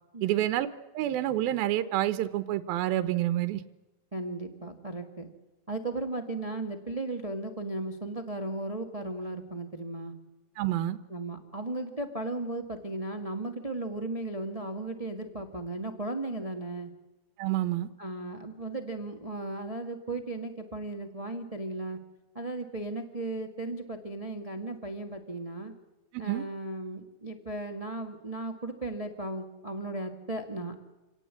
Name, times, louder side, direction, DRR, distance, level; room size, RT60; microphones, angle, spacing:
voice 1, 0.2-0.7 0.9-3.6 10.6-11.0 17.4-17.9 26.1-26.4, right 13 dB, 85° right, 10 dB, 2.7 m, -28 dB
voice 2, 4.1-5.3 5.7-10.1 11.1-16.9 18.0-22.0 22.3-25.7 26.2-30.7, right 2 dB, 40° right, 5 dB, 0.5 m, -36 dB
27.5 x 18.5 x 8.5 m, 1.1 s
omnidirectional pair, 4.2 m